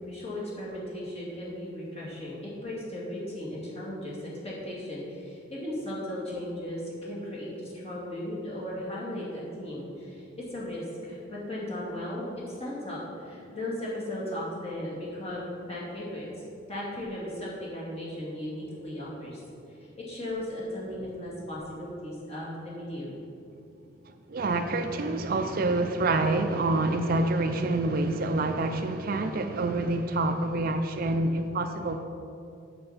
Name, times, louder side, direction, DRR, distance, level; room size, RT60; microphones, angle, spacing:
voice 1, 0.0-16.3 16.7-19.4 20.0-23.1, left 1 dB, 30° left, -6 dB, 2.3 m, -36 dB
voice 2, 24.3-32.0, right 2 dB, 45° right, 7 dB, 0.4 m, -27 dB
7.9 x 6.8 x 5.7 m, 2.6 s
head